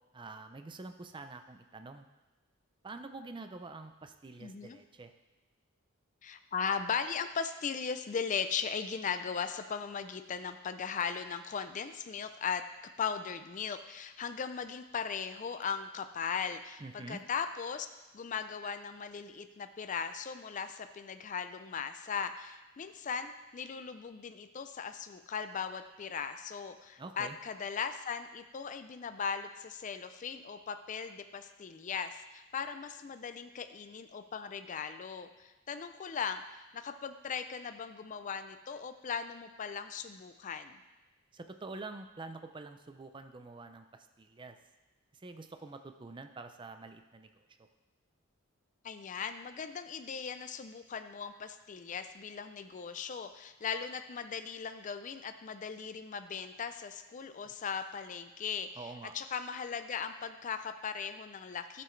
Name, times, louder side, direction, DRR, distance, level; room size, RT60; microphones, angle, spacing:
voice 1, 0.1-2.1 2.8-5.1 16.8-17.2 27.0-27.4 41.3-44.6 45.1-47.7 57.5-57.6 58.8-59.1, right 3 dB, 25° right, 7 dB, 0.4 m, -47 dB
voice 2, 4.4-4.8 6.2-12.6 13.0-17.9 18.1-40.8 48.8-58.7 59.1-61.8, left 6 dB, 35° left, 9 dB, 0.4 m, -38 dB
12.0 x 6.9 x 3.2 m, 1.1 s
head